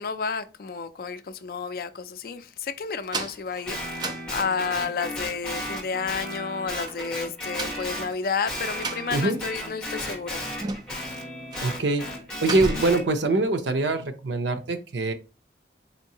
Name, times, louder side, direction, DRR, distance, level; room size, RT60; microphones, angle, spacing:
voice 1, 0.0-10.5, left 5 dB, 55° left, 0.4 m, -31 dB
sound 1, 3.0-5.0 6.8-9.7 9.9-10.0 10.5-11.1 11.5-11.8 12.1-13.1, right 3 dB, 25° right, 0.4 m, -35 dB
Guitar, 3.6-8.1 8.4-13.0, equal, 5° left, 1.3 m, -34 dB
voice 2, 11.6-12.1 12.4-15.1, right 2 dB, 85° right, 0.6 m, -24 dB
4.3 x 2.7 x 2.8 m
head